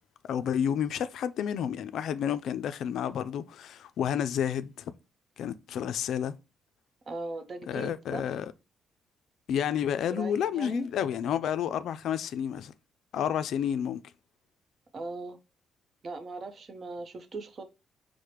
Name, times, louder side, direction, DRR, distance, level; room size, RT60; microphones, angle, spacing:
voice 1, 0.3-4.9 5.4-6.3 7.7-8.5 9.5-12.7 13.1-14.0, left 9 dB, 75° left, 0.3 m, -30 dB
voice 2, 7.1-8.2 10.1-10.9 14.9-15.4 16.0-17.6, right 2 dB, 45° right, 0.7 m, -38 dB
4.8 x 2.1 x 2.9 m
cardioid pair, 90°, 0 cm